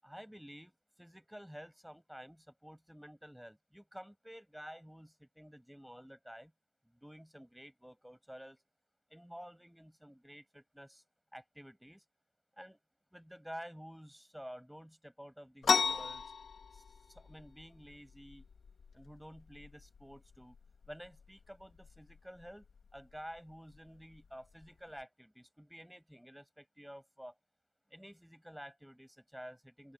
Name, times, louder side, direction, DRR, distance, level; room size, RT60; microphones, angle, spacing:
voice 1, 0.0-6.5 7.0-8.6 9.1-11.0 11.3-12.0 12.6-12.8 13.1-16.2 16.7-18.4 18.9-20.6 20.9-22.7 22.9-27.3 27.9-29.9, equal, 5° right, 7.5 m, -51 dB
sound 1, 15.6-25.0, left 5 dB, 80° left, 3.3 m, -39 dB
open air
cardioid pair, 45°, 0 cm